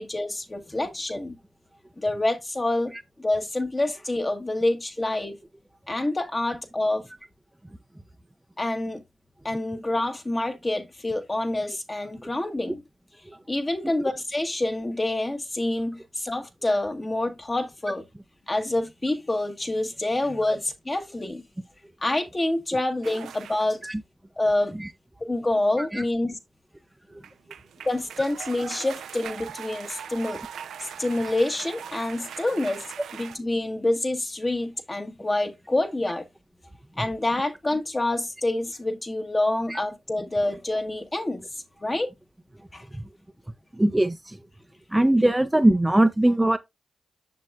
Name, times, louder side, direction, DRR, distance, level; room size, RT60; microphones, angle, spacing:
voice 1, 0.0-1.4 2.0-2.9 3.2-5.4 5.9-7.0 8.6-9.0 9.4-12.8 13.5-18.0 18.5-21.4 22.0-23.8 24.4-24.7 25.2-26.4 27.8-30.4 31.0-32.8 33.1-36.2 37.0-41.4 41.8-42.1 42.7-42.8, left 2 dB, 30° left, 1.3 m, -27 dB
sound 1, 23.0-23.8 27.1-33.4, right 8 dB, 90° right, 0.5 m, -40 dB
voice 2, 43.7-44.4 44.9-46.6, right 1 dB, 15° right, 0.5 m, -21 dB
7.4 x 6.1 x 2.4 m
cardioid pair, 50°, 0 cm